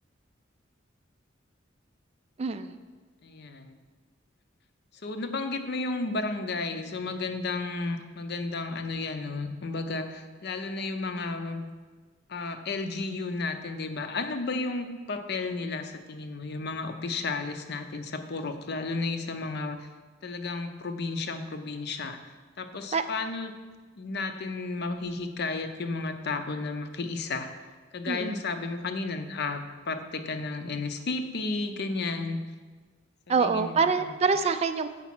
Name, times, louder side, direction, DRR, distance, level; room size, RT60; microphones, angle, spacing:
voice 1, 2.4-2.7 22.9-23.0 28.1-28.4 33.3-34.9, right 5 dB, 30° right, 10 dB, 0.3 m, -25 dB
voice 2, 3.2-3.8 5.0-11.7 12.3-19.9 20.2-22.2 22.6-23.6 24.0-27.5 27.9-32.4 33.4-34.1 34.4-34.5, left 3 dB, 55° left, 8 dB, 0.6 m, -33 dB
7.1 x 4.9 x 5.9 m, 1.4 s
head